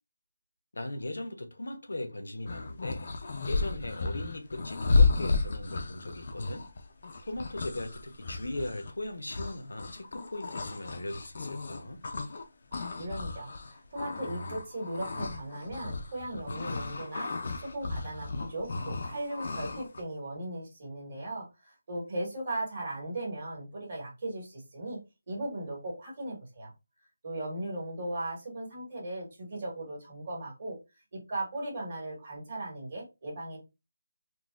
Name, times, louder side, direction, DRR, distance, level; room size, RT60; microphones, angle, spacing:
voice 1, 0.7-3.1 3.5-6.7 7.2-12.0, left 1 dB, 80° left, 0.8 m, -38 dB
sound 1, 2.5-12.4 12.7-20.0, left 3 dB, 40° left, 0.5 m, -32 dB
voice 2, 12.7-17.3 17.5-25.0 25.3-26.7 27.2-30.8 31.1-33.6, right 1 dB, 40° right, 1.7 m, -37 dB
3.9 x 2.3 x 2.4 m
figure-of-eight pair, 175°, 0 cm